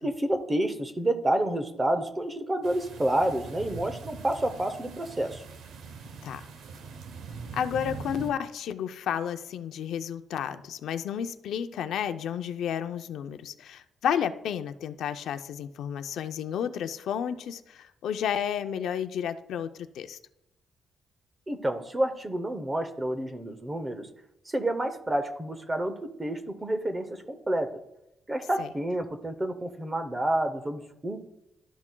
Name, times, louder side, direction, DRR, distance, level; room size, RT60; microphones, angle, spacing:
voice 1, 0.0-5.4 21.5-24.1 24.5-27.7 28.3-31.2, right 1 dB, 15° right, 8 dB, 0.7 m, -29 dB
sound 1, 2.6-8.3, right 4 dB, 80° right, 0.8 m, -42 dB
voice 2, 7.5-20.2 28.6-28.7, left 8 dB, 75° left, 9 dB, 0.5 m, -32 dB
12.0 x 6.0 x 2.2 m, 0.86 s
cardioid pair, 175°, 0 cm